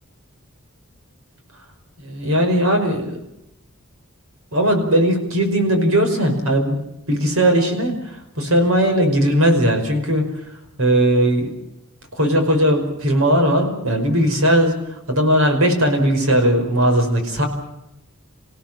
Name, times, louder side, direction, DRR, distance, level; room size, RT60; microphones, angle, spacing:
voice 1, 2.0-3.2 4.5-6.8 7.1-10.3 10.8-11.5 12.1-17.5, equal, 85° right, 5 dB, 5.4 m, -18 dB
28.0 x 17.0 x 7.6 m, 0.85 s
head